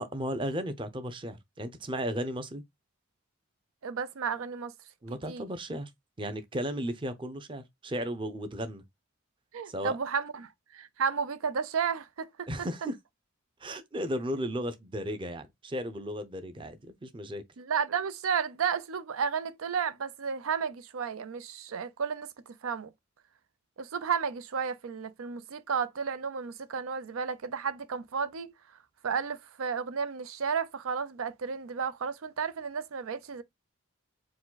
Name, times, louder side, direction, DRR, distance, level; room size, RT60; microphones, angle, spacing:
voice 1, 0.0-2.6 5.0-5.9 6.2-8.8 9.7-10.0 12.5-13.0 13.6-17.4, equal, 25° right, 0.6 m, -35 dB
voice 2, 3.8-4.7 5.3-5.5 9.5-12.5 17.6-22.9 23.8-28.5 29.0-33.4, right 6 dB, 90° right, 0.5 m, -32 dB
4.8 x 2.2 x 3.9 m
head